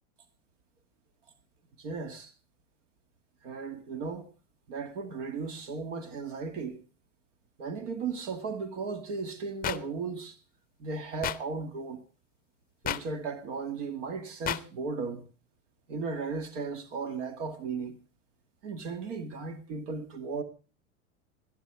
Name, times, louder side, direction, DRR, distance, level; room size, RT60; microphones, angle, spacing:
voice 1, 1.8-2.3 3.4-4.3 4.7-6.8 7.6-10.4 10.8-12.0 12.8-15.3 15.9-18.0 18.6-20.4, right 4 dB, 70° right, 2.1 m, -36 dB
sound 1, 9.6-9.8 11.2-11.4 12.8-13.0 14.4-14.6, left 12 dB, 25° left, 0.6 m, -30 dB
19.0 x 10.0 x 4.8 m
hypercardioid pair, 105°, 38 cm